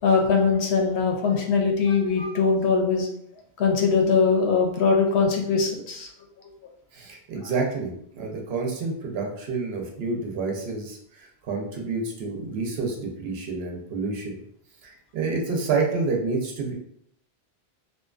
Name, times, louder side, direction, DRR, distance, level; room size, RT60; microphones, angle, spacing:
voice 1, 0.0-3.1 3.6-6.1, left 5 dB, 80° left, 2 dB, 0.8 m, -21 dB
voice 2, 6.9-14.4 14.8-16.7, right 4 dB, 75° right, 1 dB, 0.8 m, -29 dB
2.6 x 2.2 x 2.3 m, 0.70 s
omnidirectional pair, 1.1 m